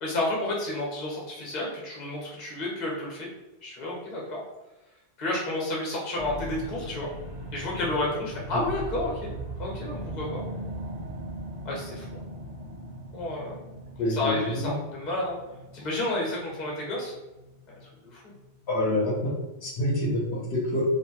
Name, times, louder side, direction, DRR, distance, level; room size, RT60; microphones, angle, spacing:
voice 1, 0.0-3.3 3.6-4.4 5.2-7.1 7.5-9.3 9.6-10.4 11.6-12.2 13.1-13.6 14.1-15.4 15.7-17.1 18.0-18.2, left 1 dB, 45° left, -3 dB, 0.9 m, -31 dB
sound 1, 6.2-18.8 19.3-19.4, right 1 dB, 55° right, 0.5 m, -40 dB
voice 2, 14.0-14.7 18.7-19.3 19.6-20.2 20.5-20.8, left 1 dB, 75° left, -4 dB, 1.0 m, -26 dB
2.5 x 2.1 x 2.8 m, 1.0 s
omnidirectional pair, 1.1 m